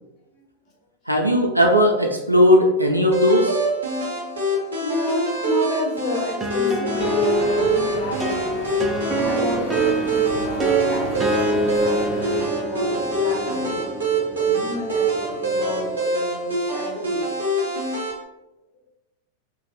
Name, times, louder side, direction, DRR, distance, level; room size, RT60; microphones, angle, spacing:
voice 1, 1.1-3.6, equal, 85° right, 1 dB, 0.4 m, -17 dB
sound 1, 3.1-18.1, right 2 dB, 70° right, 0.8 m, -25 dB
voice 2, 4.8-8.4 9.1-13.8 14.3-17.3, left 2 dB, 30° left, -3 dB, 1.0 m, -30 dB
sound 2, 6.4-16.0, right 1 dB, 20° right, 0.4 m, -27 dB
sound 3, 6.9-12.5, left 2 dB, 55° left, 0.8 m, -34 dB
2.9 x 2.2 x 2.7 m, 0.99 s
figure-of-eight pair, 90°, 0 cm